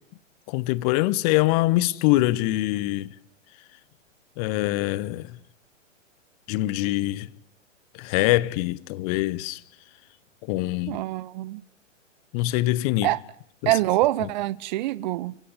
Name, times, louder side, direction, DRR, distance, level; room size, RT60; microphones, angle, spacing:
voice 1, 0.5-3.1 4.4-5.3 6.5-7.3 7.9-9.6 10.5-11.0 12.3-13.1 13.6-13.7, left 18 dB, 30° left, 1.1 m, -24 dB
voice 2, 10.9-11.6 13.0-13.2 13.7-15.4, right 16 dB, 35° right, 1.0 m, -25 dB
28.5 x 17.0 x 9.8 m
figure-of-eight pair, 115°, 37 cm